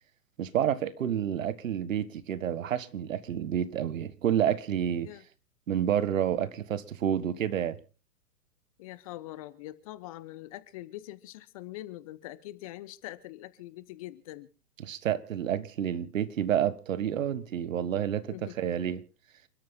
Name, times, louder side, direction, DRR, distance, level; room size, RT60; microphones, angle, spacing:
voice 1, 0.4-5.1 5.7-7.8 14.8-19.0, right 9 dB, 55° right, 1.5 m, -29 dB
voice 2, 8.8-14.5 18.3-18.6, left 16 dB, 25° left, 0.6 m, -43 dB
29.5 x 12.5 x 2.3 m
figure-of-eight pair, 120°, 47 cm